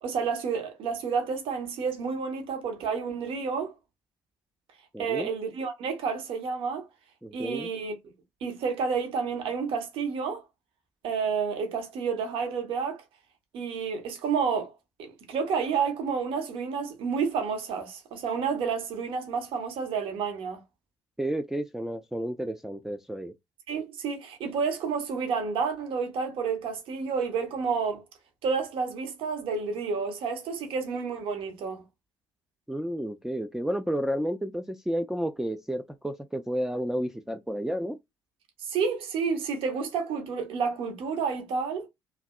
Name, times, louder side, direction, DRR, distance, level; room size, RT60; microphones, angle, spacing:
voice 1, 0.0-3.7 5.0-6.9 7.3-7.9 8.4-10.4 11.0-13.0 13.5-14.7 15.0-20.6 23.7-28.0 28.4-31.8 38.6-41.9, right 5 dB, 55° right, 0.8 m, -30 dB
voice 2, 4.9-5.3 7.2-7.7 21.2-23.3 32.7-38.0, equal, 5° right, 0.3 m, -31 dB
2.6 x 2.3 x 2.2 m
figure-of-eight pair, 50°, 11 cm